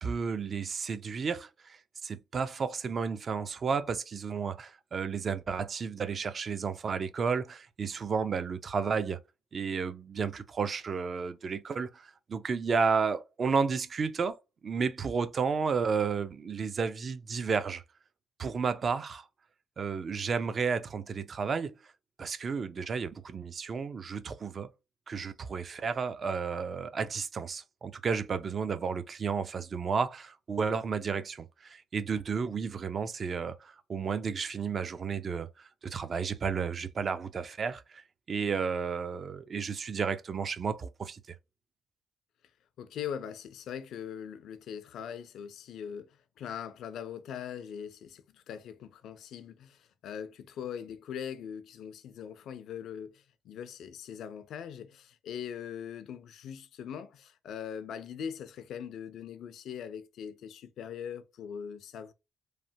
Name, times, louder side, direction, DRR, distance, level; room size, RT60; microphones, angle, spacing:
voice 1, 0.0-9.2 9.5-14.4 14.6-17.8 18.4-19.3 19.8-21.7 22.2-24.7 25.1-38.0 38.3-41.4, right 5 dB, 45° right, 0.4 m, -32 dB
voice 2, 42.8-62.1, left 8 dB, 75° left, 0.4 m, -41 dB
3.2 x 2.1 x 2.6 m
cardioid pair, 90°, 0 cm